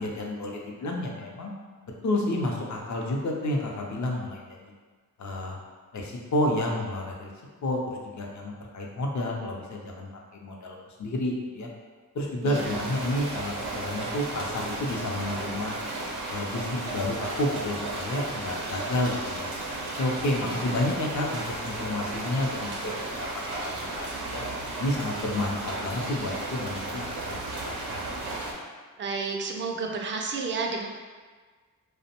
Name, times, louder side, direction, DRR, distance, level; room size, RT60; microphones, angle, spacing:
voice 1, 0.0-1.5 2.0-4.7 5.2-5.6 5.9-7.3 7.6-11.7 12.1-15.8 16.3-19.5 20.0-24.4 24.8-28.1, left 1 dB, 55° left, 0 dB, 0.6 m, -30 dB
voice 2, 12.4-12.9 20.4-20.8 29.0-30.9, right 4 dB, 35° right, 1 dB, 0.4 m, -31 dB
sound 1, 12.5-28.5, right 2 dB, 85° right, 0.5 m, -34 dB
2.5 x 2.1 x 2.8 m, 1.5 s
cardioid pair, 50°, 36 cm